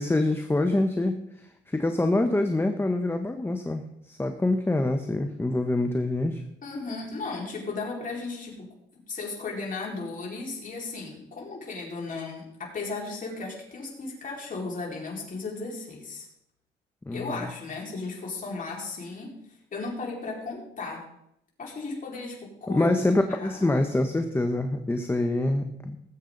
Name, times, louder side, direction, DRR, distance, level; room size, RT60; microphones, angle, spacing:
voice 1, 0.0-6.4 17.1-17.5 22.7-26.0, left 2 dB, 10° left, 6 dB, 1.0 m, -26 dB
voice 2, 6.6-8.7 9.1-16.2 17.1-19.4 19.7-21.0 21.6-22.9 23.3-23.7, left 3 dB, 45° left, -3 dB, 4.8 m, -35 dB
19.0 x 8.2 x 4.0 m, 0.79 s
cardioid pair, 90°, 20 cm